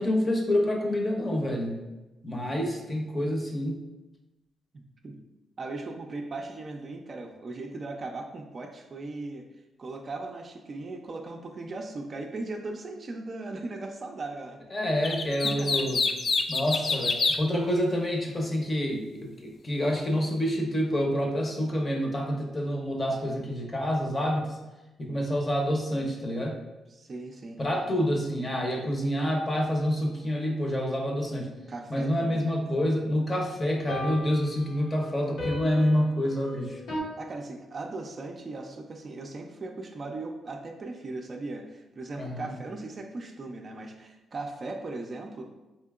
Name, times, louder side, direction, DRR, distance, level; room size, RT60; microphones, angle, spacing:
voice 1, 0.0-1.8 2.2-3.8 14.7-16.0 16.5-24.6 25.0-26.6 27.6-31.5 31.9-36.8 42.2-42.5, equal, 30° left, 1 dB, 0.7 m, -27 dB
voice 2, 4.7-5.2 5.6-9.5 9.8-14.6 15.4-15.9 23.1-23.4 26.9-27.6 31.7-32.5 35.8-35.9 37.2-45.5, right 2 dB, 45° right, 3 dB, 0.4 m, -38 dB
sound 1, 15.0-17.4, left 4 dB, 50° left, 0.3 m, -27 dB
sound 2, 33.9-37.0, left 1 dB, 85° left, 1.2 m, -37 dB
4.2 x 2.7 x 2.3 m, 1.1 s
cardioid pair, 85°, 0 cm